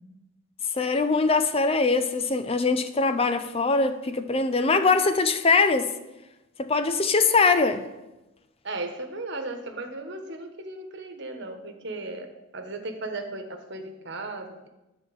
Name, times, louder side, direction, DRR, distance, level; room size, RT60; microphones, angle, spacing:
voice 1, 0.7-5.9 6.6-7.8, left 4 dB, 30° left, 0.6 m, -22 dB
voice 2, 8.6-12.3 12.5-14.7, right 2 dB, 60° right, 1.3 m, -36 dB
10.5 x 4.4 x 7.8 m
head